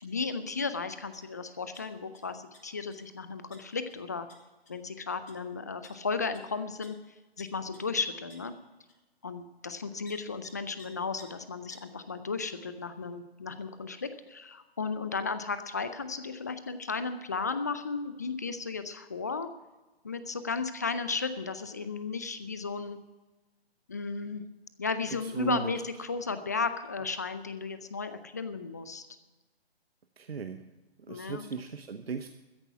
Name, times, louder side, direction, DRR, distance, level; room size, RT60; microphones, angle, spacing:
voice 1, 0.0-4.3 4.7-7.0 7.4-8.5 9.2-19.5 20.0-23.0 23.9-24.4 24.8-29.1 31.1-31.5, left 4 dB, 15° left, 11 dB, 0.4 m, -34 dB
sound 1, 1.1-1.3 1.5-2.2 2.5-2.9 3.5-3.6 3.9-4.0 4.3-4.4 4.7-4.8 5.3-5.4 5.8-5.9 6.3-6.4 6.8-6.9 7.4-7.5 7.7-7.8 8.3-8.4 8.9-9.0 10.0-10.1 10.4-10.5 10.8-10.9 11.2-11.3 11.7-11.8, left 3 dB, 70° left, 5.3 m, -53 dB
voice 2, 25.1-25.7 30.2-30.6 31.1-32.3, right 5 dB, 70° right, 7 dB, 1.0 m, -37 dB
14.0 x 10.5 x 5.7 m, 1.2 s
figure-of-eight pair, 140°, 31 cm